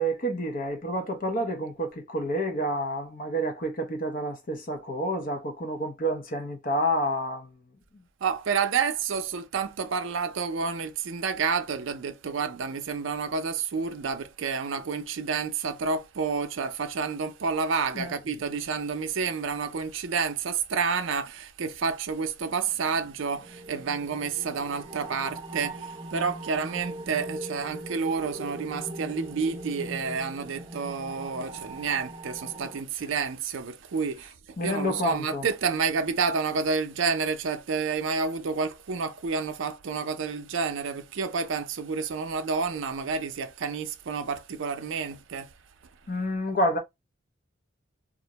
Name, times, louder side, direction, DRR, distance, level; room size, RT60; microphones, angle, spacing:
voice 1, 0.0-7.5 17.9-18.2 34.6-35.4 46.1-46.8, equal, 45° left, 0.6 m, -29 dB
voice 2, 8.2-45.5, right 5 dB, 70° right, 0.4 m, -29 dB
sound 1, 22.6-32.8, right 1 dB, 25° right, 0.7 m, -41 dB
2.4 x 2.1 x 2.8 m
head